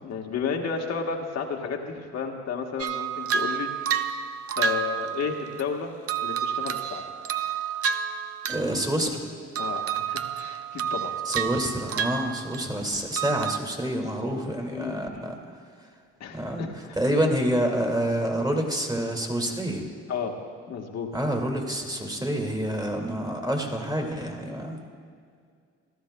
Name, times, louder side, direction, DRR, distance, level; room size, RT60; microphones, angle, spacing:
voice 1, 0.0-3.7 4.6-5.9 6.2-7.0 9.6-11.1 14.7-15.4 16.2-17.0 20.1-20.4 20.7-21.1, left 6 dB, 60° left, 1 dB, 1.3 m, -32 dB
sound 1, 2.8-5.6 6.1-8.7 9.0-9.3 9.5-12.8 13.1-13.6, right 7 dB, 55° right, 0.6 m, -30 dB
voice 2, 8.5-9.2 11.3-15.4 16.3-16.7 16.9-19.8 21.1-24.8, right 1 dB, 15° right, 2 dB, 2.0 m, -27 dB
17.5 x 13.0 x 2.2 m, 2.2 s
supercardioid pair, 65°, 29 cm